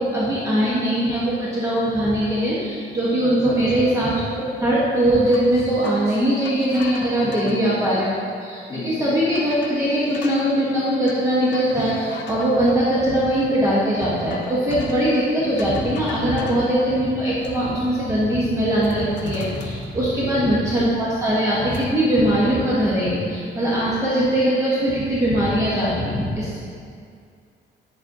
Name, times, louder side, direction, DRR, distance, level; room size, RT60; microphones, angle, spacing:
voice 1, 0.0-8.1 8.4-26.6, right 1 dB, 15° right, -8 dB, 1.0 m, -21 dB
voice 2, 3.2-3.9 7.2-8.0 8.7-9.1 16.3-16.7 20.1-20.5 23.7-23.9, left 2 dB, 20° left, -7 dB, 1.8 m, -33 dB
sound 1, 5.3-8.2 8.8-8.9 9.4-10.5 11.1-12.8 14.0-15.1 15.6-16.7 17.1-17.8 18.2-18.4 18.7-20.6 20.9-21.9, left 4 dB, 75° left, 0.7 m, -40 dB
8.6 x 7.1 x 2.6 m, 2.3 s
cardioid pair, 155°, 19 cm